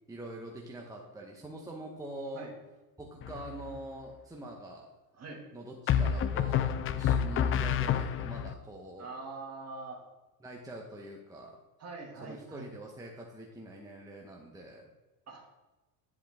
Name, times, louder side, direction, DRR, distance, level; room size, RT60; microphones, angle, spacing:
voice 1, 0.1-2.5 3.0-4.8 5.5-9.1 10.4-11.5 12.2-14.9, right 1 dB, 5° right, -1 dB, 1.0 m, -44 dB
sound 1, 3.2-3.8 5.9-8.5, left 8 dB, 30° left, 0.4 m, -29 dB
voice 2, 9.0-10.0 11.8-12.7 15.3-15.4, right 3 dB, 35° right, 1 dB, 2.1 m, -43 dB
10.0 x 4.7 x 3.5 m, 1.1 s
supercardioid pair, 95°, 46 cm